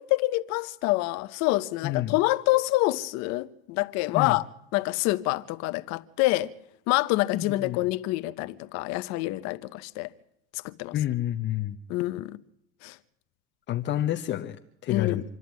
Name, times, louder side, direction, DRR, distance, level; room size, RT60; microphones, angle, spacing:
voice 1, 0.0-4.5 4.7-6.5 6.9-10.1 10.6-10.9 11.9-12.4 12.8-12.9 14.9-15.2, left 19 dB, 65° left, 1.1 m, -26 dB
voice 2, 1.8-2.2 4.1-4.4 7.3-7.8 10.9-11.8 13.7-14.6 14.8-15.2, left 12 dB, 40° left, 1.0 m, -29 dB
26.5 x 11.0 x 9.6 m
supercardioid pair, 120°, 29 cm